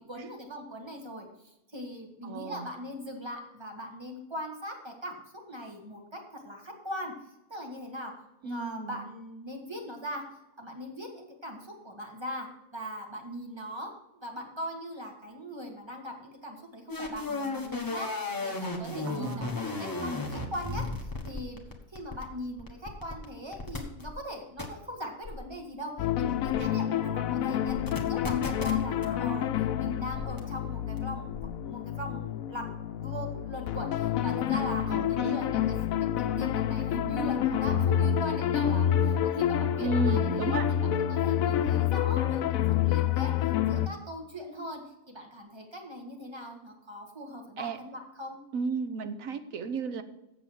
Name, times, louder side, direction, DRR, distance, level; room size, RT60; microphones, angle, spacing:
voice 1, 0.0-5.2 5.5-7.1 7.5-8.1 8.4-10.2 10.6-21.6 21.9-27.8 28.1-32.7 33.0-44.8 45.1-48.4, equal, 20° right, 2 dB, 1.7 m, -40 dB
voice 2, 2.2-2.7 8.4-9.0 19.0-19.5 26.6-26.7 34.9-35.4 39.8-40.7 47.6-47.8 48.5-50.0, right 4 dB, 75° right, 10 dB, 1.3 m, -33 dB
sound 1, 16.9-23.2 23.5-24.1 24.6-24.7 25.2-25.5 26.5-26.7 27.7-29.1 30.1-30.4 31.0-31.1 31.3-31.6, left 2 dB, 15° left, 1.3 m, -35 dB
sound 2, 26.0-43.9, left 10 dB, 80° left, 1.0 m, -28 dB
8.1 x 7.5 x 6.2 m, 0.89 s
omnidirectional pair, 1.4 m